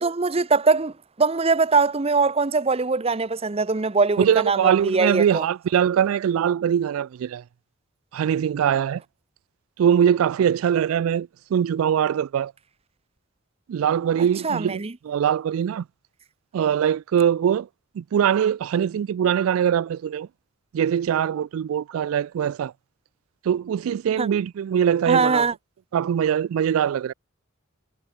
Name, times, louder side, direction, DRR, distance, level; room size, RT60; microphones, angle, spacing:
voice 1, 0.0-5.4 14.4-14.9 24.2-24.3 25.1-25.5, right 4 dB, 30° right, 0.7 m, -22 dB
voice 2, 4.2-7.4 8.1-9.0 9.8-12.5 13.7-15.8 16.5-17.7 18.0-20.3 20.7-22.7 23.4-25.5 25.9-27.1, right 8 dB, 90° right, 0.3 m, -22 dB
head